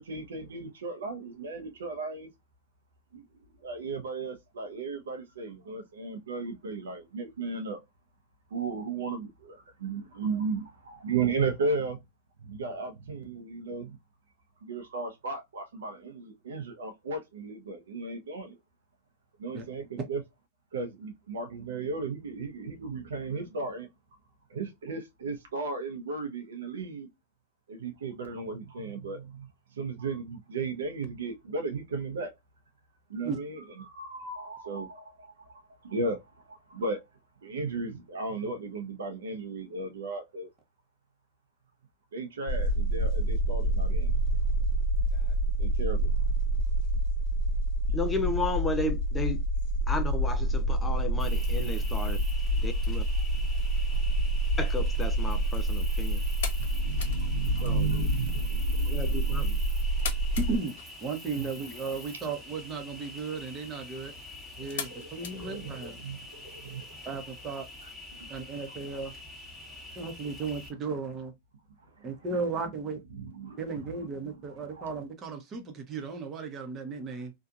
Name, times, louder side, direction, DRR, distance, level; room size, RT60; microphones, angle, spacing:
voice 1, 0.0-2.3 3.1-7.8 8.5-12.0 12.4-14.0 14.6-18.6 19.4-20.2 20.7-23.9 24.5-27.1 27.7-32.3 33.1-35.5 35.8-37.0 37.4-40.5 42.1-44.1 45.6-46.1 48.2-48.3 51.7-51.9 53.3-53.5 56.5-59.6 60.0-60.4 61.3-61.5 64.5-67.0 67.8-67.9 68.2-68.4 69.7-70.0 72.0-72.1 73.1-74.4 74.7-75.0, right 4 dB, 85° right, 0.7 m, -35 dB
sound 1, 42.5-60.6, right 1 dB, 50° left, 1.2 m, -27 dB
voice 2, 47.9-49.4 49.9-52.2 52.6-53.0 54.6-56.2 57.6-57.8 58.9-59.6, left 2 dB, 15° left, 0.5 m, -33 dB
Cricket, 51.2-70.7, left 2 dB, 5° right, 1.2 m, -46 dB
sound 2, 56.1-66.3, left 7 dB, 70° left, 0.9 m, -45 dB
voice 3, 60.4-60.7 61.0-64.1 64.6-66.0 67.0-67.7 68.3-69.1 70.0-71.3 72.0-73.0 73.6-77.3, right 4 dB, 30° right, 0.9 m, -35 dB
2.8 x 2.4 x 2.4 m
hypercardioid pair, 115°, 0 cm